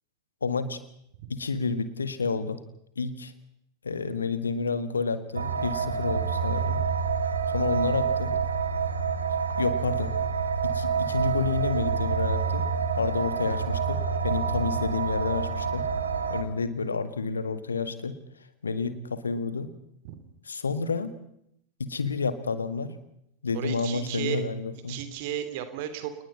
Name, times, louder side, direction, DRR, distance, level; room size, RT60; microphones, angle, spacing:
voice 1, 0.4-0.8 1.3-2.6 3.0-3.3 3.8-6.8 7.5-8.3 9.6-10.1 10.6-12.7 12.9-14.0 14.2-15.8 16.3-18.1 18.6-19.7 20.5-21.1 21.8-22.9 23.4-25.0, left 4 dB, 75° left, 12 dB, 1.9 m, -29 dB
sound 1, 5.3-16.4, right 6 dB, 75° right, 2.0 m, -28 dB
voice 2, 23.5-24.4 24.9-26.1, right 10 dB, 50° right, 10 dB, 3.0 m, -34 dB
29.0 x 20.0 x 5.5 m, 0.74 s
figure-of-eight pair, 90°, 0 cm